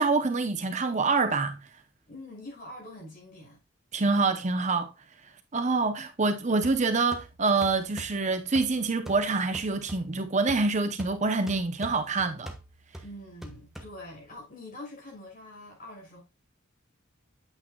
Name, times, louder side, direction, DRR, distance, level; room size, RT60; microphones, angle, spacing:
voice 1, 0.0-1.6 3.9-4.9 5.5-12.5, right 3 dB, 35° right, 0.7 m, -26 dB
voice 2, 2.1-3.6 13.0-16.2, left 1 dB, 45° left, 6.2 m, -44 dB
sound 1, 6.6-14.4, right 1 dB, ahead, 1.1 m, -46 dB
8.9 x 8.5 x 2.3 m
head